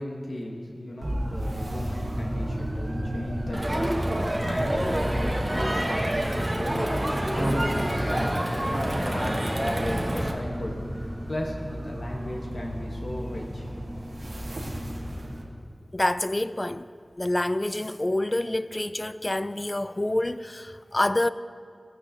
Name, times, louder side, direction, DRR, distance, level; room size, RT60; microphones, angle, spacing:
voice 1, 0.0-13.7, left 1 dB, 75° left, 1.1 m, -36 dB
sound 1, 1.0-15.4, equal, 65° right, 1.2 m, -33 dB
Crowd, 3.5-10.3, right 1 dB, 35° right, 1.1 m, -27 dB
voice 2, 15.9-16.9 17.2-21.3, left 1 dB, 35° left, 0.3 m, -27 dB
13.5 x 9.2 x 2.7 m
wide cardioid pair, 40°, 0 cm